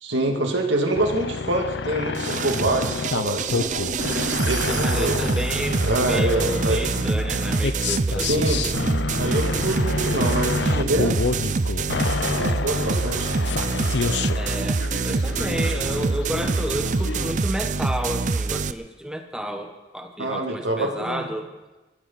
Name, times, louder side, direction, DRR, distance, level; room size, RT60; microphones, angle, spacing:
voice 1, 0.0-3.8 4.4-5.3 5.8-6.8 8.3-8.6 9.2-11.4 12.3-13.3 20.2-21.2, right 1 dB, 85° right, 2 dB, 2.4 m, -25 dB
sound 1, 0.9-17.3, left 4 dB, 70° left, 0.6 m, -29 dB
sound 2, 2.1-18.7, right 4 dB, 40° right, 0.5 m, -25 dB
voice 2, 4.7-8.3 14.4-21.5, equal, 5° right, 4 dB, 0.9 m, -31 dB
23.5 x 15.0 x 4.1 m, 1.1 s
head